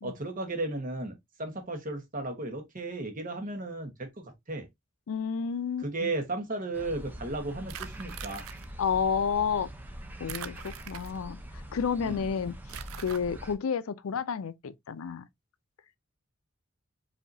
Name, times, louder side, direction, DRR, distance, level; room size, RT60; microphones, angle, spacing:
voice 1, 0.0-4.7 5.8-8.4 12.0-12.2, right 2 dB, 40° right, 1.1 m, -35 dB
voice 2, 5.1-6.1 8.8-9.7 10.2-11.4 11.7-12.6 13.0-15.2, left 6 dB, 90° left, 0.5 m, -30 dB
sound 1, 6.7-13.6, equal, 10° right, 0.6 m, -43 dB
sound 2, 7.7-8.7 10.3-11.4 12.7-13.2, right 10 dB, 85° right, 0.4 m, -42 dB
5.1 x 2.7 x 2.6 m
head